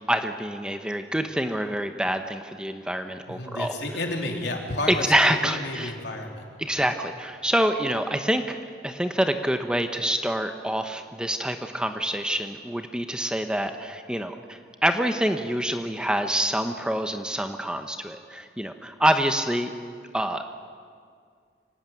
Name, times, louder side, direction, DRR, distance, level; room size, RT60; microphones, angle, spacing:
voice 1, 0.1-3.7 4.9-5.9 6.6-8.6 8.8-19.7 20.1-20.4, right 1 dB, 5° right, 6 dB, 0.9 m, -26 dB
voice 2, 3.3-6.5, left 2 dB, 70° left, 2 dB, 3.5 m, -31 dB
25.5 x 17.5 x 9.3 m, 2.1 s
head